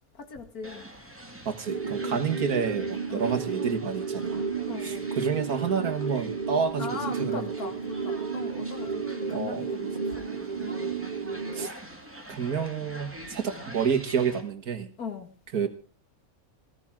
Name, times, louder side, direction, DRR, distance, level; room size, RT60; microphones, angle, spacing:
voice 1, 0.1-0.8 2.0-2.2 3.1-3.2 4.7-5.1 6.8-10.8 15.0-15.3, left 5 dB, 90° left, 6 dB, 2.4 m, -39 dB
sound 1, 0.6-14.4, right 1 dB, 10° right, 2.4 m, -45 dB
voice 2, 1.5-4.4 4.8-7.5 9.3-9.6 11.5-11.7 12.3-14.9 15.5-15.7, right 6 dB, 90° right, 7 dB, 2.1 m, -29 dB
sound 2, 1.7-11.7, right 5 dB, 40° right, 0.6 m, -32 dB
16.0 x 15.0 x 3.7 m, 0.38 s
omnidirectional pair, 1.5 m